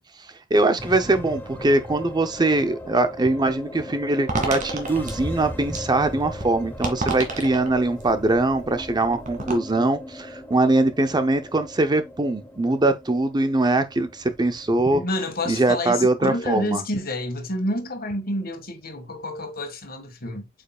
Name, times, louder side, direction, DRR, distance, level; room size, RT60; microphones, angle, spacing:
voice 1, 0.5-15.0 15.5-16.8, right 2 dB, 20° right, 0.5 m, -22 dB
sound 1, 0.8-19.3, left 1 dB, 10° left, 1.0 m, -39 dB
sound 2, 4.3-9.6, right 3 dB, 40° right, 2.2 m, -32 dB
voice 2, 14.9-20.5, left 1 dB, 50° left, 1.6 m, -29 dB
8.4 x 5.3 x 2.3 m
head